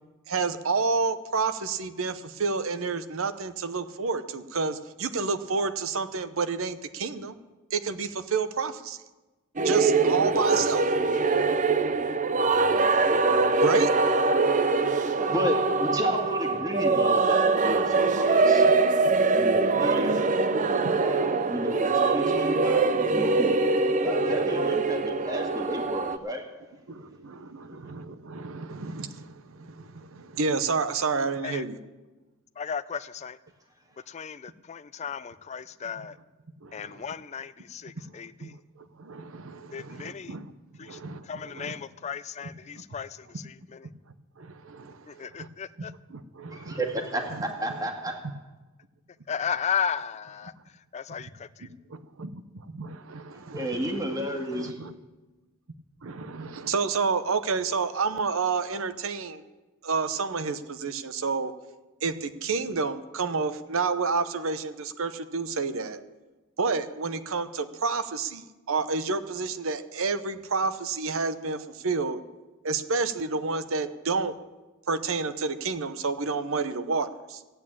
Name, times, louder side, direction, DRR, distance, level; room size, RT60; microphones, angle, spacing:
voice 1, 0.3-7.3 7.7-9.0 9.6-10.8 13.6-13.9 19.1-19.2 19.7-20.2 20.6-20.9 24.2-24.4 26.9-31.8 36.6-37.1 38.4-38.5 38.8-40.5 40.8-41.7 42.7-42.8 44.4-45.5 45.8-46.8 47.3-47.4 47.7-47.8 51.6-54.9 56.0-59.4 59.8-61.5 62.0-66.0 66.6-72.2 72.6-74.3 74.9-77.4, right 4 dB, 65° right, 11 dB, 0.8 m, -30 dB
sound 1, 9.6-26.2, right 3 dB, 35° right, 0.6 m, -23 dB
voice 2, 14.9-18.7 19.3-20.3 21.0-23.6 24.0-26.4 46.5-48.1 53.5-54.8, equal, 15° right, 2 dB, 1.9 m, -32 dB
voice 3, 32.6-33.4 34.1-36.2 36.7-38.5 39.7-40.3 40.8-41.0 41.2-43.9 45.1-45.9 49.3-50.5 50.9-51.7, left 7 dB, 30° left, 13 dB, 0.3 m, -35 dB
14.5 x 8.7 x 8.6 m, 1.2 s
head